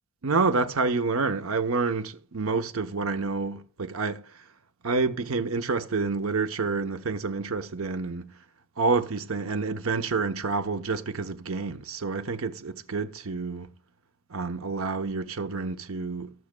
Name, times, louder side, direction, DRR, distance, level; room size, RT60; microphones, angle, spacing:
voice 1, 0.2-4.2 4.8-8.3 8.8-13.7 14.3-16.3, right 4 dB, 80° right, 0.8 m, -28 dB
18.5 x 6.2 x 2.2 m
head